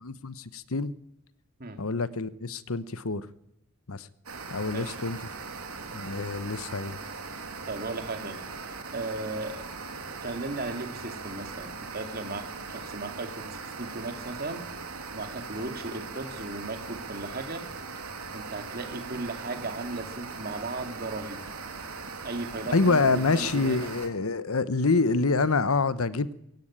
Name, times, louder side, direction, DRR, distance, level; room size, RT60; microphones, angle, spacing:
voice 1, 0.0-0.9 1.8-3.3 3.9-4.1 4.5-5.2 5.9-7.0 22.7-26.4, left 3 dB, 80° left, 1.0 m, -26 dB
sound 1, 4.3-24.1, right 4 dB, 85° right, 3.1 m, -40 dB
voice 2, 7.7-8.4 8.9-9.6 10.2-14.6 15.1-17.6 18.3-21.4 22.2-23.9, right 2 dB, 45° right, 2.6 m, -36 dB
23.0 x 16.5 x 9.0 m
head